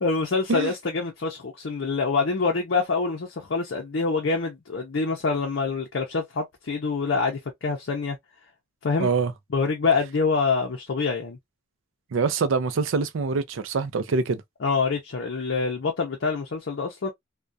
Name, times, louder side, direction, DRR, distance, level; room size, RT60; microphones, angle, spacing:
voice 1, 0.0-8.2 8.8-9.1 9.5-11.4 14.6-17.1, left 4 dB, 60° left, 0.5 m, -26 dB
voice 2, 9.0-9.3 12.1-14.4, right 4 dB, 75° right, 0.4 m, -24 dB
2.3 x 2.1 x 2.5 m
head